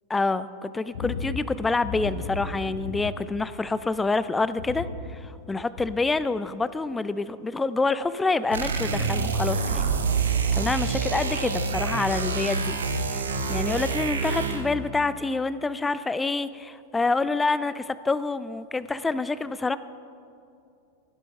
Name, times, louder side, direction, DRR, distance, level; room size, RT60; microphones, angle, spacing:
voice 1, 0.1-9.9 10.3-12.8 13.0-19.8, left 3 dB, 10° left, 15 dB, 0.4 m, -27 dB
sound 1, 0.9-4.0 4.4-6.1 6.6-6.7, left 4 dB, 60° left, 1.4 m, -35 dB
sound 2, 8.5-14.8, right 4 dB, 70° right, 0.9 m, -26 dB
15.0 x 11.0 x 3.4 m, 2.5 s
figure-of-eight pair, 90°, 0 cm